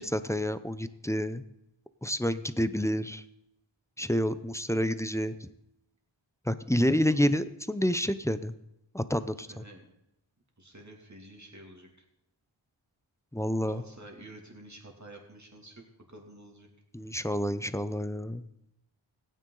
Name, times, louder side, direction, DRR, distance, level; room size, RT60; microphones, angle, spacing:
voice 1, 0.0-1.4 2.0-3.2 4.0-5.5 6.5-8.5 8.9-9.6 13.3-13.8 16.9-18.5, equal, 5° left, 13 dB, 0.5 m, -29 dB
voice 2, 9.2-9.9 10.6-11.9 13.7-15.8 16.1-16.7, right 1 dB, 35° right, 1 dB, 2.6 m, -49 dB
16.0 x 9.2 x 3.9 m, 0.85 s
wide cardioid pair, 40°, 49 cm